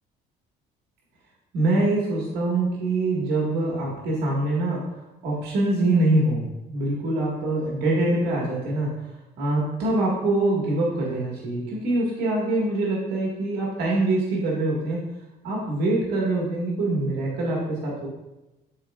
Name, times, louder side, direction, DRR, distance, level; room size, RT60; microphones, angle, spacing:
voice 1, 1.5-4.8 5.2-6.4 6.7-8.9 9.4-15.0 15.4-18.1, right 2 dB, 75° right, -4 dB, 1.6 m, -24 dB
10.5 x 4.3 x 2.4 m, 1.0 s
cardioid pair, 110°, 17 cm